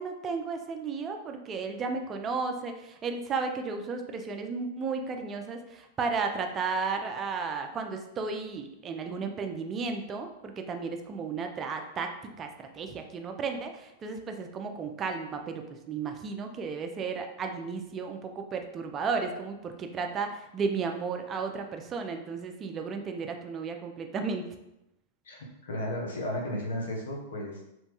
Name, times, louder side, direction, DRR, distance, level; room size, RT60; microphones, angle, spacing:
voice 1, 0.0-24.4, right 4 dB, 30° right, 5 dB, 0.4 m, -34 dB
voice 2, 25.2-27.7, left 1 dB, 80° left, -1 dB, 0.8 m, -34 dB
3.0 x 2.2 x 2.9 m, 0.87 s
hypercardioid pair, 115°, 0 cm